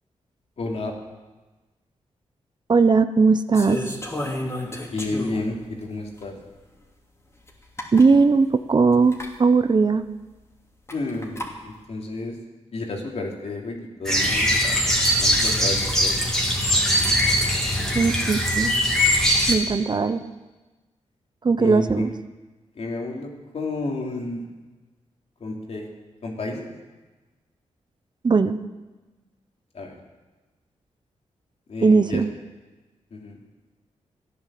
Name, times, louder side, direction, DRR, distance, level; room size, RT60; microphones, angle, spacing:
voice 1, 0.6-0.9 4.9-6.3 10.9-12.4 12.7-14.8 15.1-16.2 19.8-19.9 21.6-22.1 22.7-24.4 25.4-25.9 26.2-26.7 29.7-29.9 31.7-32.2 33.1-33.4, left 2 dB, 60° left, 0 dB, 3.0 m, -31 dB
voice 2, 2.7-3.8 7.9-10.1 17.9-18.7 19.5-20.2 21.4-22.1 28.2-28.6 31.8-32.3, right 4 dB, 40° right, 11 dB, 0.7 m, -19 dB
sound 1, 3.5-5.6 6.2-6.3 7.5-7.6 7.8-8.1 9.1-9.3 10.9-11.5, left 1 dB, 20° left, 2.9 m, -32 dB
sound 2, 14.0-19.5, equal, 5° left, 2.8 m, -21 dB
14.0 x 10.5 x 7.6 m, 1.2 s
cardioid pair, 75°, 12 cm